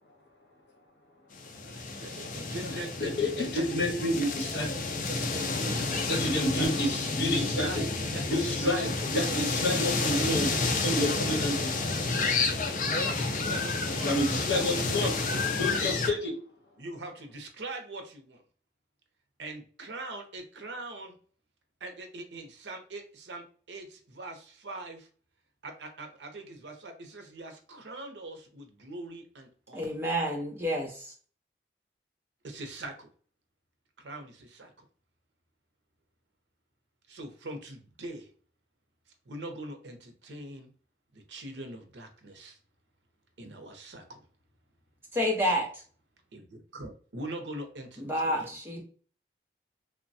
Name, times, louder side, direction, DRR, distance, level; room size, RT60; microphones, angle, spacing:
sound 1, 1.3-16.1, left 3 dB, 45° left, 0.4 m, -30 dB
voice 1, 1.6-3.6 5.1-6.8 7.3-7.9 8.1-9.5 9.8-10.5 13.0-14.1 14.5-15.1 16.8-18.4 19.4-21.1 21.8-25.1 25.6-29.9 32.4-33.1 34.0-34.7 37.1-38.3 39.3-40.7 41.1-42.6 43.4-44.2 46.3-48.5, right 2 dB, 85° right, 6 dB, 0.6 m, -42 dB
voice 2, 3.0-4.7 6.1-7.8 8.3-10.5 10.8-11.7 14.0-15.1 15.6-16.3, left 1 dB, 75° left, 2 dB, 0.9 m, -29 dB
voice 3, 29.7-31.1 45.1-45.7 48.0-48.8, equal, 15° right, -1 dB, 0.7 m, -29 dB
3.1 x 2.1 x 2.6 m, 0.43 s
head